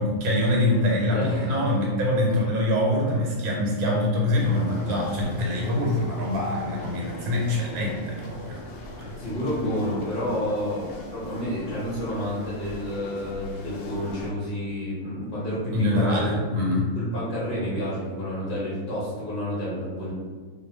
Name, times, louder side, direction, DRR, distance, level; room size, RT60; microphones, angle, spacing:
voice 1, 0.0-8.6 9.0-9.1 15.7-16.9, left 1 dB, 85° right, -1 dB, 1.2 m, -24 dB
voice 2, 1.1-1.5 9.2-16.4 16.9-20.1, left 1 dB, 45° left, -8 dB, 0.8 m, -30 dB
sound 1, 4.3-14.3, left 2 dB, 75° left, 0.5 m, -41 dB
2.6 x 2.3 x 3.1 m, 1.5 s
omnidirectional pair, 1.5 m